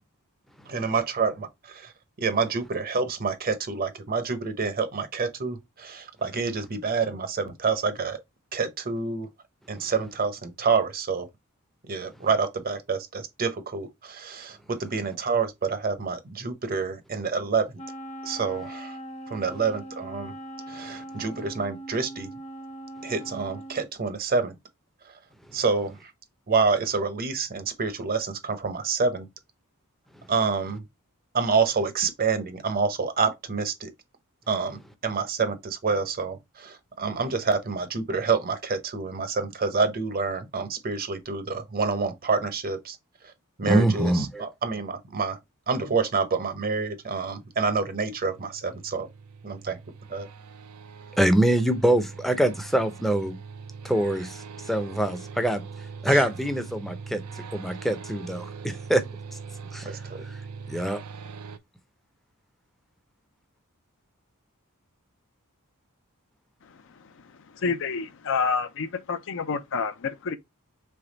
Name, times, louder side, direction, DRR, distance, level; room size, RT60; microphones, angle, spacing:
voice 1, 0.7-1.9 2.2-8.2 8.5-9.3 9.7-11.3 11.9-17.7 18.2-19.0 19.3-20.3 20.7-22.3 23.0-24.5 25.0-25.1 25.5-26.1 26.5-29.3 30.3-30.8 31.3-33.9 34.5-43.0 43.6-45.4 45.7-49.1 49.4-49.8 50.1-50.3 56.1-56.2 59.9-60.2, right 4 dB, 40° right, 0.7 m, -27 dB
Wind instrument woodwind instrument, 17.8-23.9, right 1 dB, 30° left, 0.8 m, -40 dB
voice 2, 43.7-44.4 51.2-53.4 53.8-55.6 56.0-59.0 59.7-59.9 60.2-60.4 60.7-61.0, right 1 dB, ahead, 0.6 m, -24 dB
sound 1, 47.0-61.6, right 5 dB, 90° right, 0.5 m, -42 dB
voice 3, 66.6-70.4, left 5 dB, 60° left, 0.6 m, -29 dB
3.5 x 3.3 x 3.9 m
head